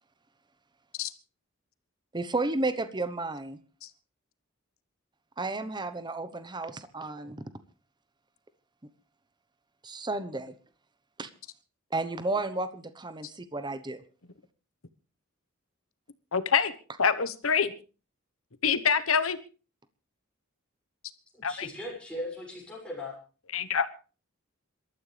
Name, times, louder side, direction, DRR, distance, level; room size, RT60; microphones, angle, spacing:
voice 1, 2.1-3.6 5.4-7.4 9.8-10.5 11.2-11.3 11.9-14.0, right 2 dB, 20° right, 12 dB, 1.0 m, -32 dB
voice 2, 16.3-16.7 17.0-17.7 18.6-19.4 21.4-21.7 23.5-23.9, left 6 dB, 85° left, 12 dB, 1.2 m, -25 dB
voice 3, 21.3-23.2, left 1 dB, 5° left, -3 dB, 6.7 m, -38 dB
27.0 x 13.0 x 3.4 m, 0.36 s
head